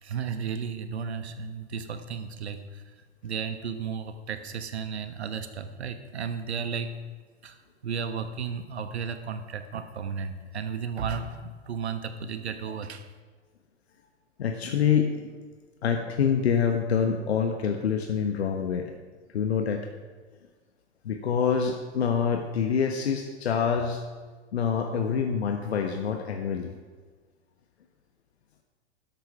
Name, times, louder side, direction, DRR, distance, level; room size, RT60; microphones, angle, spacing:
voice 1, 0.0-2.8 3.2-6.9 7.4-7.6 7.8-13.1, right 6 dB, 65° right, 9 dB, 1.4 m, -34 dB
voice 2, 14.4-15.3 15.8-18.9 19.3-19.8 21.0-24.0 24.5-26.7, left 7 dB, 65° left, 5 dB, 1.2 m, -26 dB
13.0 x 11.5 x 4.9 m, 1.4 s
figure-of-eight pair, 100°, 35 cm